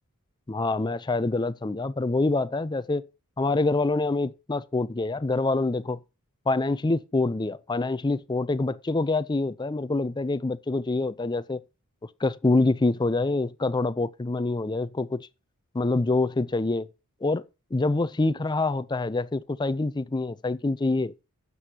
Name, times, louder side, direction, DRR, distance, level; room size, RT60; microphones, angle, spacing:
voice 1, 0.5-3.1 3.4-6.0 6.5-11.6 12.2-15.3 15.7-16.9 17.2-17.4 17.7-21.1, left 2 dB, 20° left, 0.4 m, -26 dB
12.5 x 8.3 x 2.9 m
head